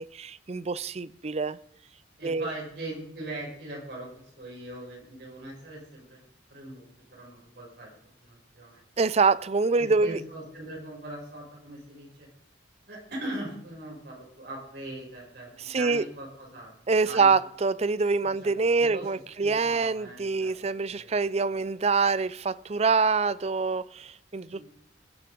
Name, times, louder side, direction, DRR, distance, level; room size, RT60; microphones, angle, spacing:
voice 1, 0.0-1.6 2.2-2.5 9.0-10.2 15.6-16.0 16.9-24.6, right 4 dB, 35° right, 0.5 m, -25 dB
voice 2, 2.2-6.2 6.5-8.8 9.8-12.3 12.9-17.3 18.2-18.5 18.8-21.1 24.3-24.6, right 1 dB, 60° right, 6.9 m, -41 dB
21.5 x 8.5 x 5.3 m
head